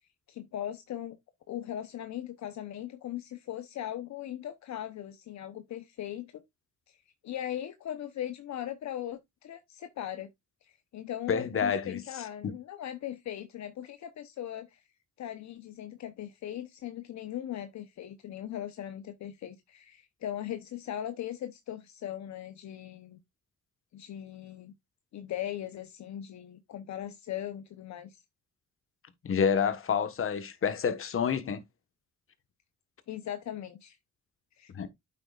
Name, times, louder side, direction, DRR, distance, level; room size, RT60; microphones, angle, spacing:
voice 1, 0.3-1.2 1.5-6.4 6.9-10.3 10.6-14.8 15.2-23.2 23.9-24.7 25.1-28.2 33.1-34.0 34.6-34.7, left 11 dB, 65° left, 0.9 m, -39 dB
voice 2, 11.3-12.0 12.4-12.5 29.2-31.6 34.7-34.9, left 7 dB, 45° left, 1.4 m, -28 dB
8.8 x 6.7 x 2.4 m
cardioid pair, 90°, 30 cm